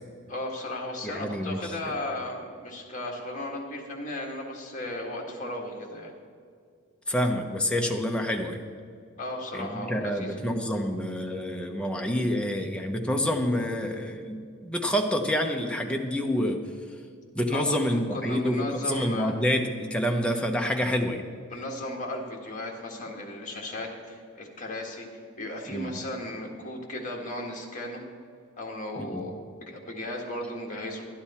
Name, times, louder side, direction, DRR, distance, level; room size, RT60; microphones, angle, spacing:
voice 1, 0.3-6.1 9.2-10.4 17.5-17.8 18.1-19.3 21.5-25.1 25.4-28.0 28.6-29.3 29.6-31.0, left 1 dB, 35° left, 0 dB, 1.7 m, -35 dB
voice 2, 1.0-1.9 7.1-8.6 9.5-16.6 17.4-21.2 25.7-25.9 29.0-29.3, equal, 5° left, 2 dB, 0.8 m, -28 dB
11.5 x 10.5 x 4.3 m, 2.3 s
head